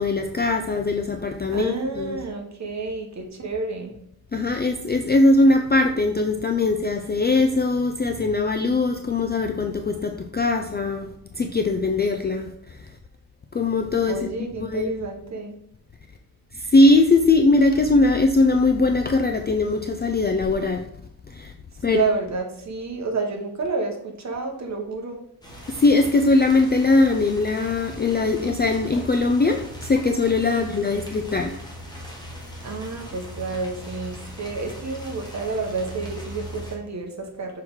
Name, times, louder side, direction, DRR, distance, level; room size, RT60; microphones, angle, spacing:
voice 1, 0.0-2.2 4.3-11.1 11.3-12.5 13.5-14.3 14.6-14.9 16.7-20.8 21.3-21.5 21.8-22.0 25.7-31.5, left 2 dB, 25° left, 4 dB, 0.4 m, -20 dB
voice 2, 1.5-3.9 14.1-15.6 21.9-25.2 30.5-30.7 32.6-37.6, right 3 dB, 45° right, 2 dB, 1.2 m, -29 dB
sound 1, 25.4-36.8, equal, 10° left, 1.4 m, -39 dB
6.2 x 4.6 x 3.6 m, 0.76 s
wide cardioid pair, 130°, 38 cm